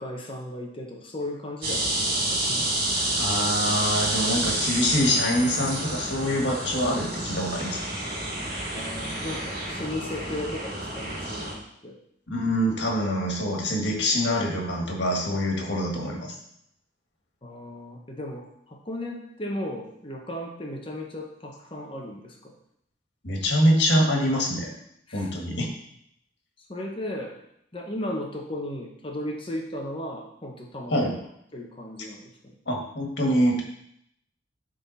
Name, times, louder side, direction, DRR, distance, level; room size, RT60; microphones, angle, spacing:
voice 1, 0.0-2.7 8.7-12.0 17.4-22.5 25.1-25.3 26.7-27.4 27.7-30.9 31.5-32.3, left 1 dB, 30° left, 1 dB, 0.9 m, -35 dB
sound 1, 1.6-11.5, right 1 dB, 50° right, 2.0 m, -29 dB
voice 2, 3.2-8.0 12.3-16.4 23.2-24.7 25.1-25.7 30.9-31.2 32.7-33.6, equal, 65° left, 0 dB, 1.7 m, -25 dB
9.9 x 3.8 x 4.1 m, 0.74 s
head